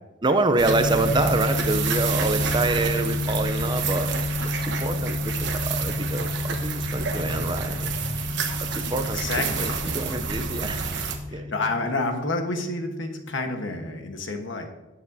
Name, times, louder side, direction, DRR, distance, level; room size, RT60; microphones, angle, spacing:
voice 1, 0.2-4.1 4.4-8.0 8.7-10.9 11.3-11.5, right 2 dB, 20° right, 8 dB, 0.6 m, -27 dB
sound 1, 0.6-11.2, right 5 dB, 60° right, 1.1 m, -29 dB
sound 2, 0.6-14.1, left 2 dB, 90° right, 2.2 m, -31 dB
voice 2, 9.1-9.7 11.3-14.7, left 2 dB, 60° left, 4 dB, 1.3 m, -29 dB
18.0 x 7.4 x 2.8 m, 1.1 s
head